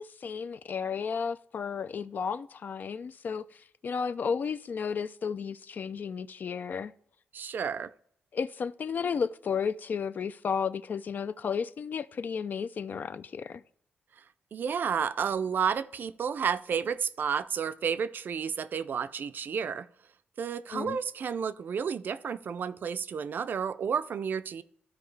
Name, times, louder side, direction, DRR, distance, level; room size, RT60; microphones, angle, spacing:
voice 1, 0.0-6.9 8.3-13.6 20.7-21.0, left 6 dB, 50° left, 0.3 m, -33 dB
voice 2, 7.3-7.9 14.2-14.3 14.5-19.9 20.4-24.6, right 7 dB, 60° right, 0.4 m, -31 dB
13.0 x 4.6 x 3.2 m
cardioid pair, 90°, 4 cm